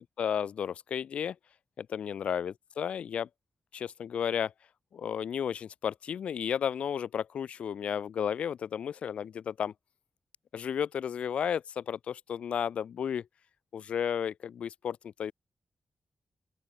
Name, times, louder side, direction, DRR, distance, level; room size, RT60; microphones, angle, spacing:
voice 1, 0.0-1.4 1.8-3.3 3.7-4.5 4.9-9.7 10.5-13.3 13.7-15.3, left 8 dB, 85° left, 0.9 m, -33 dB
open air
wide cardioid pair, 130°, 2 cm